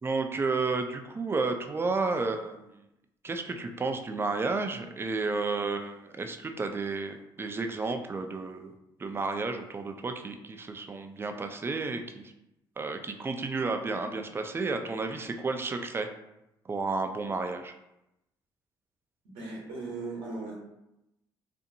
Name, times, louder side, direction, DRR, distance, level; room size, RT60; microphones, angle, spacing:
voice 1, 0.0-2.8 3.2-8.7 9.0-12.3 12.8-16.1 16.7-17.7, right 3 dB, 25° right, 6 dB, 0.4 m, -32 dB
voice 2, 19.3-20.6, right 3 dB, 90° right, -4 dB, 0.9 m, -37 dB
2.6 x 2.5 x 2.6 m, 0.89 s
supercardioid pair, 65°, 10 cm